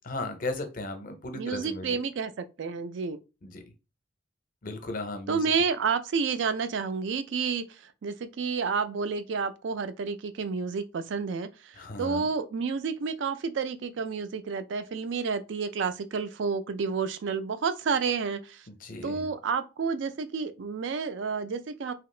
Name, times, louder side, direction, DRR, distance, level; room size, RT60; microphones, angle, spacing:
voice 1, 0.0-2.0 3.4-3.6 4.6-5.5 11.7-12.3 18.7-19.3, left 2 dB, 45° left, 0.6 m, -36 dB
voice 2, 1.3-3.2 5.3-18.7 19.0-21.9, right 5 dB, 60° right, 0.4 m, -30 dB
2.8 x 2.4 x 3.1 m
head